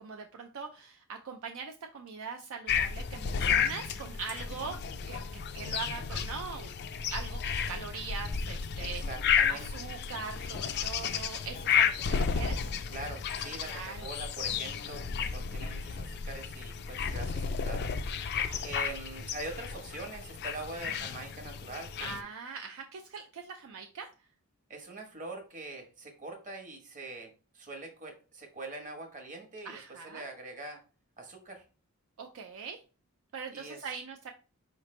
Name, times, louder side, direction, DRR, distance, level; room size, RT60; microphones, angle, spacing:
voice 1, 0.0-4.8 5.1-6.7 7.1-7.4 7.7-9.0 9.5-12.7 13.7-14.1 18.3-18.6 22.0-24.1 29.6-30.3 32.2-32.8 33.3-34.3, right 5 dB, 65° right, 4 dB, 0.4 m, -41 dB
sound 1, 2.7-22.2, left 7 dB, 50° left, 0.4 m, -32 dB
voice 2, 8.8-9.8 12.9-17.9 18.6-22.3 24.7-30.8 31.2-31.6 33.5-33.9, right 2 dB, 35° right, 3 dB, 1.1 m, -43 dB
4.8 x 3.2 x 3.1 m, 0.35 s
head